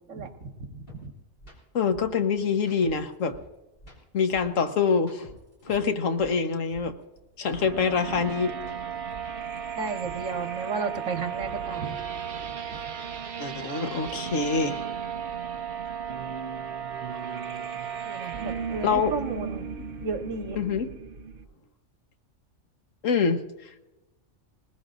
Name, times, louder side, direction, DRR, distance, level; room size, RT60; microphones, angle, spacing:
voice 1, 0.1-1.1 9.7-12.0 12.7-12.8 18.0-19.7 20.0-20.6, right 4 dB, 80° right, 6 dB, 1.6 m, -33 dB
sound 1, 0.9-1.0 1.4-1.6 1.9-3.5 3.8-5.9 6.2-8.3 8.6-10.4, equal, 45° left, 3.8 m, -49 dB
voice 2, 1.7-3.4 4.1-5.3 5.6-6.9 7.4-8.5 13.4-14.8 18.8-19.1 20.5-20.9 23.0-23.4, left 5 dB, 90° left, 7 dB, 1.5 m, -25 dB
sound 2, 7.5-21.5, right 7 dB, 50° right, 1.0 m, -35 dB
20.0 x 20.0 x 2.5 m, 1.0 s
omnidirectional pair, 1.3 m